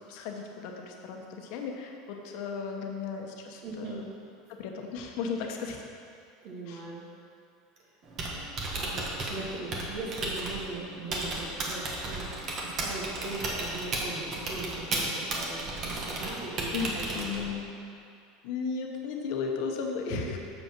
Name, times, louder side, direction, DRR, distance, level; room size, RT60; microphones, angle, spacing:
voice 1, 0.0-4.1 4.5-5.8 6.7-6.8 16.7-17.7 18.4-20.4, left 5 dB, 65° left, 2 dB, 1.0 m, -35 dB
voice 2, 3.6-4.1 6.4-7.0 8.7-12.3 12.6-17.5 20.1-20.4, right 2 dB, 60° right, -3 dB, 2.1 m, -40 dB
Typing, 8.0-17.6, right 2 dB, 40° right, 1.5 m, -34 dB
7.2 x 5.5 x 6.0 m, 2.4 s
supercardioid pair, 120°, 0 cm